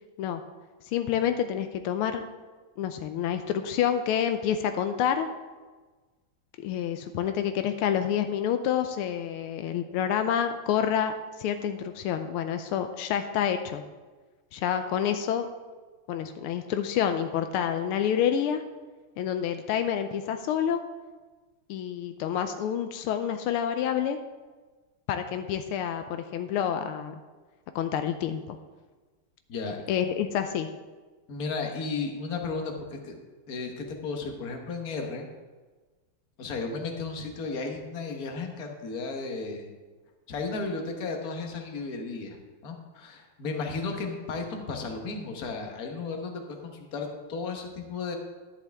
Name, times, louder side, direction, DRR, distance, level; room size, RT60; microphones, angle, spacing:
voice 1, 0.8-2.2 2.8-5.3 6.6-13.8 14.5-15.5 16.1-18.6 19.2-20.8 21.7-24.2 25.1-27.1 27.7-28.6 29.9-30.7, left 9 dB, 85° left, 8 dB, 1.5 m, -28 dB
voice 2, 31.3-33.1 33.5-35.3 36.4-39.7 40.3-42.4 42.6-48.2, left 4 dB, 50° left, 3 dB, 1.5 m, -34 dB
11.0 x 10.5 x 3.5 m, 1.3 s
omnidirectional pair, 2.4 m